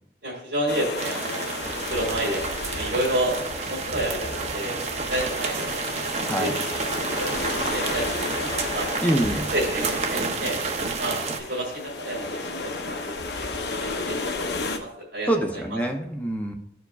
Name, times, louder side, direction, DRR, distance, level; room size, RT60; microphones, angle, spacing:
voice 1, 0.2-1.6 1.9-3.4 3.6-4.8 5.1-6.6 7.1-8.9 9.5-10.6 11.0-11.2 11.5-13.0 13.2-15.3, right 1 dB, 85° right, -7 dB, 1.8 m, -30 dB
sound 1, 0.7-14.8, left 3 dB, 70° left, 0.7 m, -33 dB
sound 2, 1.0-11.4, right 4 dB, 40° right, 0.6 m, -30 dB
voice 2, 9.0-9.5 15.3-16.5, right 1 dB, 10° left, 2 dB, 0.6 m, -25 dB
12.5 x 4.6 x 2.4 m, 0.80 s
head